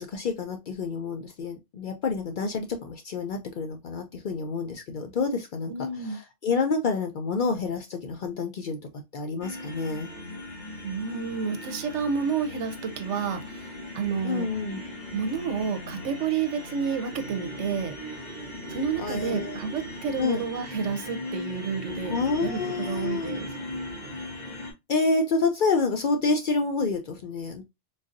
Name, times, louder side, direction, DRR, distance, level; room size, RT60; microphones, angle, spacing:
voice 1, 0.0-5.7 6.0-8.8 9.1-10.1 14.2-14.8 19.0-19.6 20.2-20.4 22.0-23.4 24.9-27.6, left 4 dB, 60° left, 0.6 m, -28 dB
voice 2, 5.7-6.2 10.8-14.5 15.1-17.9 18.7-23.5, right 6 dB, 85° right, 1.0 m, -30 dB
sound 1, 9.4-24.7, left 1 dB, 40° left, 1.3 m, -38 dB
3.9 x 2.6 x 2.4 m
omnidirectional pair, 1.2 m